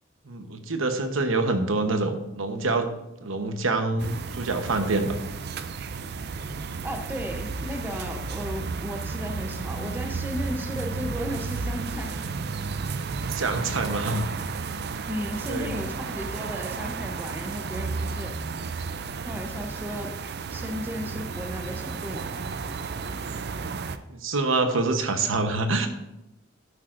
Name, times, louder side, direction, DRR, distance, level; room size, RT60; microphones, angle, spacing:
voice 1, 0.3-2.9 3.2-5.1 6.4-6.5 13.2-14.2 15.4-15.8 24.1-25.9, right 3 dB, 85° right, 7 dB, 1.0 m, -26 dB
sound 1, 4.0-24.0, right 4 dB, 55° right, 0.5 m, -33 dB
voice 2, 6.8-12.2 15.0-18.4 19.2-22.3, equal, 10° right, 4 dB, 0.7 m, -35 dB
11.5 x 8.8 x 2.6 m, 0.94 s
head